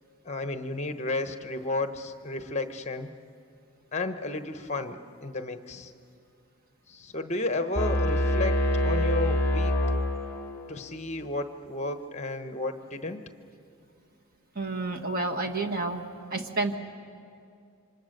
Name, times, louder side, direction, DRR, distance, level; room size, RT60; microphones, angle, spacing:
voice 1, 0.2-3.1 3.9-5.9 6.9-9.7 10.7-13.2, left 2 dB, 30° left, 8 dB, 1.0 m, -32 dB
sound 1, 7.7-10.7, left 1 dB, 10° left, 2.3 m, -25 dB
voice 2, 14.5-16.0 16.3-16.8, right 3 dB, 40° right, 4 dB, 1.5 m, -29 dB
27.0 x 25.5 x 6.7 m, 2.5 s
head